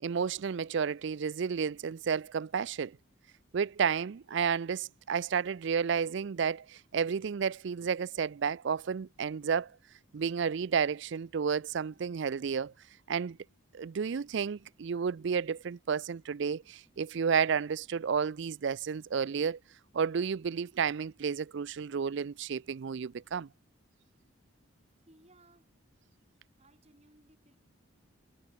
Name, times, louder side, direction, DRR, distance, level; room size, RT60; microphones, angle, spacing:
voice 1, 0.0-3.0 3.5-9.7 10.1-12.7 13.1-13.4 13.7-19.6 19.9-23.5, right 6 dB, 55° right, 0.4 m, -31 dB
sound 1, 7.4-12.8, left 1 dB, 70° left, 7.2 m, -76 dB
voice 2, 25.1-25.8 26.6-27.6, right 1 dB, 30° right, 6.4 m, -62 dB
head